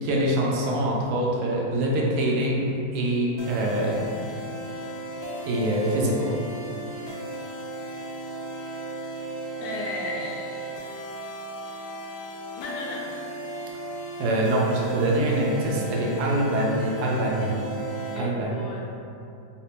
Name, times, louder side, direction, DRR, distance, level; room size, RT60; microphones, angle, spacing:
voice 1, 0.0-4.2 5.4-6.4 14.2-17.7 18.1-18.6, right 1 dB, 75° right, -2 dB, 1.2 m, -24 dB
sound 1, 3.4-18.2, right 2 dB, 70° left, 0.6 m, -36 dB
voice 2, 9.6-10.7 12.6-13.1 18.1-19.0, left 2 dB, 85° left, -3 dB, 1.2 m, -35 dB
3.3 x 2.8 x 3.3 m, 2.6 s
omnidirectional pair, 1.8 m